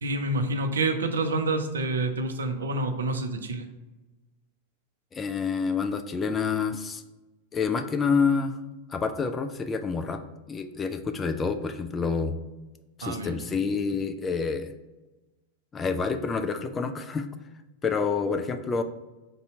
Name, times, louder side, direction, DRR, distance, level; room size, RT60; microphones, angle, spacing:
voice 1, 0.0-3.7 13.0-13.5, right 2 dB, 70° right, 6 dB, 0.5 m, -28 dB
voice 2, 5.1-7.0 7.5-8.6 8.9-10.2 10.5-12.4 13.0-14.7 15.7-17.3 17.8-18.8, left 5 dB, 20° left, 7 dB, 0.3 m, -28 dB
3.9 x 2.7 x 4.4 m, 1.1 s
figure-of-eight pair, 90°, 0 cm